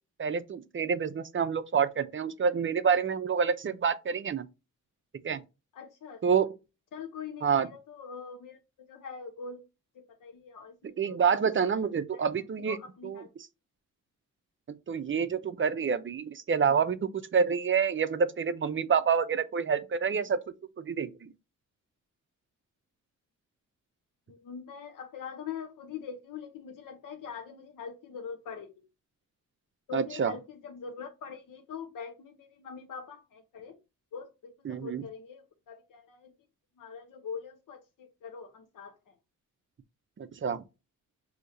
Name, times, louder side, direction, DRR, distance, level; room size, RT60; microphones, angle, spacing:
voice 1, 0.2-4.4 5.2-5.4 6.2-6.5 7.4-7.7 11.0-12.8 13.0-13.2 14.9-21.3 29.9-30.3 34.7-35.0 40.2-40.6, right 6 dB, 40° right, 0.5 m, -28 dB
voice 2, 5.7-6.2 6.9-9.7 9.9-11.4 12.1-12.3 12.6-13.3 24.3-28.8 29.9-33.8 34.1-36.3 36.8-39.2, left 6 dB, 75° left, 0.8 m, -43 dB
6.3 x 2.8 x 2.6 m
wide cardioid pair, 110°, 32 cm